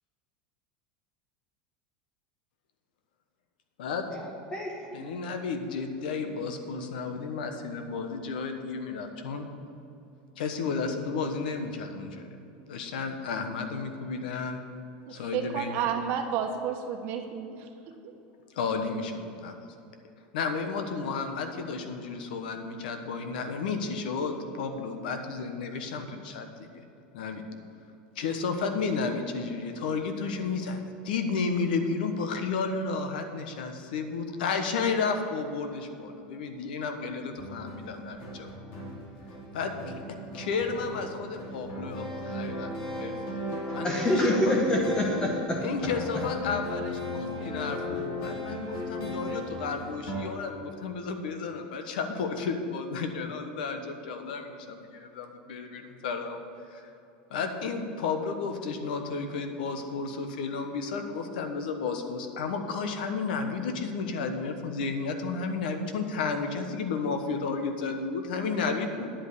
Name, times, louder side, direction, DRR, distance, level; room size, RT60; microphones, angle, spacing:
voice 1, 3.9-5.0 43.7-45.6, left 1 dB, 15° left, -1 dB, 1.0 m, -27 dB
voice 2, 4.9-9.5 10.4-12.2 12.7-14.6 15.1-15.9 18.5-19.6 20.3-26.8 27.1-27.4 28.1-38.5 39.5-40.0 40.3-42.7 43.0-43.4 43.7-44.6 45.6-56.4 56.7-56.9 57.3-69.1, left 4 dB, 85° left, 6 dB, 1.1 m, -32 dB
voice 3, 15.1-17.7, right 8 dB, 45° right, 3 dB, 1.1 m, -31 dB
sound 1, 37.4-50.3, left 1 dB, 65° left, 2.5 m, -36 dB
10.0 x 5.3 x 8.3 m, 2.7 s
supercardioid pair, 155°, 5 cm